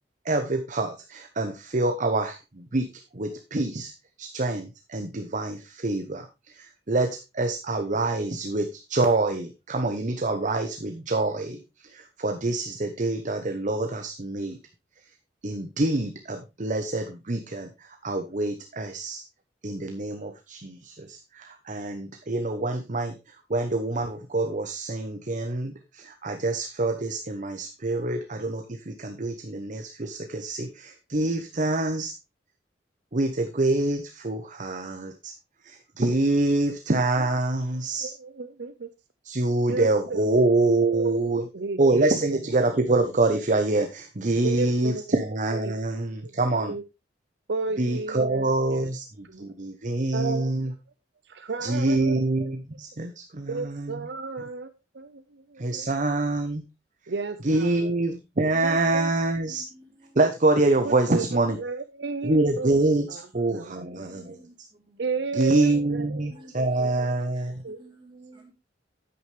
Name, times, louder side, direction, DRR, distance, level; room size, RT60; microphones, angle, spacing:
voice 1, 0.2-2.9 3.1-3.9 4.2-6.3 6.5-14.6 15.4-17.7 18.0-19.2 19.6-23.2 23.5-32.1 33.1-35.3 35.6-38.1 39.2-41.4 41.8-46.7 47.8-50.7 51.6-54.1 55.6-56.6 57.4-59.7 60.2-61.6 62.2-64.4 65.3-67.6, right 2 dB, 45° right, 0.9 m, -26 dB
voice 2, 38.0-38.9 39.7-40.3 40.8-42.4 42.9-43.0 44.4-45.1 45.6-45.9 46.2-46.3 46.6-46.8 47.5-48.9 49.2-49.5 50.1-50.5 51.3-52.2 53.5-54.7 54.9-56.0 57.1-57.9 58.6-59.1 60.8-61.2 61.6-62.8 63.1-64.1 65.0-66.3 66.6-67.1 67.6-67.8, right 4 dB, 70° right, 0.6 m, -33 dB
voice 3, 58.5-58.9 59.5-60.2 63.6-64.5 64.9-65.0 66.3-68.5, right 2 dB, 30° right, 3.4 m, -50 dB
9.7 x 8.8 x 3.3 m
head